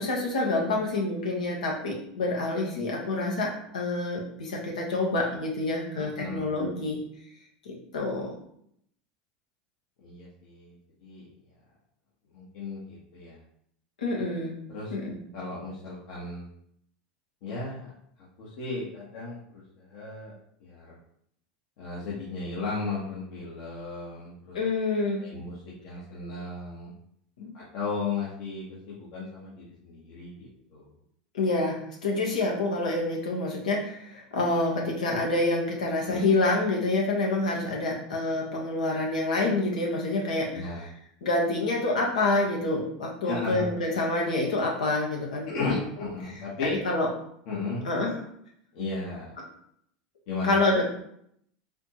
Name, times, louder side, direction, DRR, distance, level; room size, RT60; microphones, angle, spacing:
voice 1, 0.0-7.0 7.6-8.3 14.0-14.5 14.9-15.2 24.5-25.2 27.4-27.5 31.3-40.7 41.2-45.8 46.6-47.1 47.8-48.2 50.4-50.8, left 2 dB, 90° left, -1 dB, 1.2 m, -27 dB
voice 2, 6.0-6.5 10.0-10.7 11.0-11.3 12.3-13.4 14.7-14.9 15.3-16.5 17.4-17.9 18.4-20.3 20.6-21.0 21.8-24.6 25.2-25.6 25.8-26.9 27.5-30.9 36.0-36.3 40.5-40.9 43.2-43.6 45.5-46.7 47.5-47.9 48.7-49.3 50.3-50.6, left 3 dB, 65° left, -6 dB, 1.2 m, -35 dB
4.1 x 2.9 x 3.0 m, 0.70 s
hypercardioid pair, 100°, 4 cm